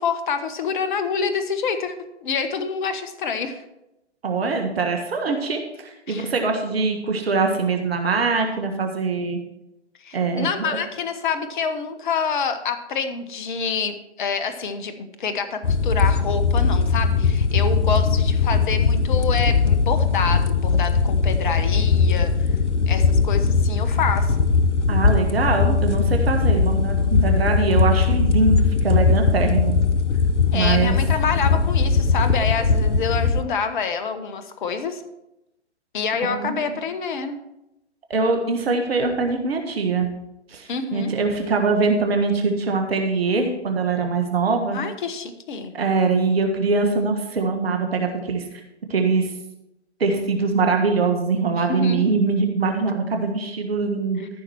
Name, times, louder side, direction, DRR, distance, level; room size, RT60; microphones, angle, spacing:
voice 1, 0.0-1.9 2.2-3.6 6.1-6.3 10.0-22.3 22.9-24.4 30.5-35.0 35.9-37.4 40.7-41.1 44.7-45.7 51.6-52.1 54.2-54.3, left 5 dB, 45° left, 9 dB, 1.1 m, -27 dB
voice 2, 4.2-9.4 10.1-10.8 24.9-29.8 30.5-31.0 36.2-36.8 38.1-40.1 40.5-44.8 45.7-48.6 48.9-49.3 50.0-54.3, right 4 dB, 60° right, 4 dB, 1.6 m, -23 dB
sound 1, 15.6-33.4, left 4 dB, 85° left, 0.9 m, -19 dB
14.0 x 5.9 x 4.5 m, 0.89 s
figure-of-eight pair, 130°, 35 cm